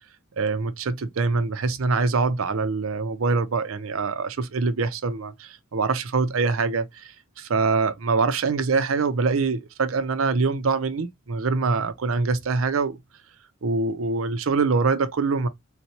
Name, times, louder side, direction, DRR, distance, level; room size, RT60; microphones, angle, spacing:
voice 1, 0.4-13.0 13.6-15.5, right 4 dB, 75° right, 0.6 m, -24 dB
4.1 x 2.2 x 2.8 m
head